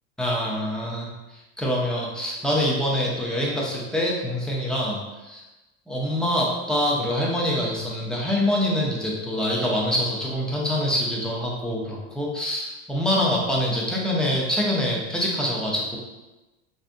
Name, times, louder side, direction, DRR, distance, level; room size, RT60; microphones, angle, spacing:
voice 1, 0.2-1.1 1.6-5.4 5.9-16.0, equal, ahead, -4 dB, 0.6 m, -25 dB
3.3 x 2.7 x 2.5 m, 1.1 s
hypercardioid pair, 105°, 34 cm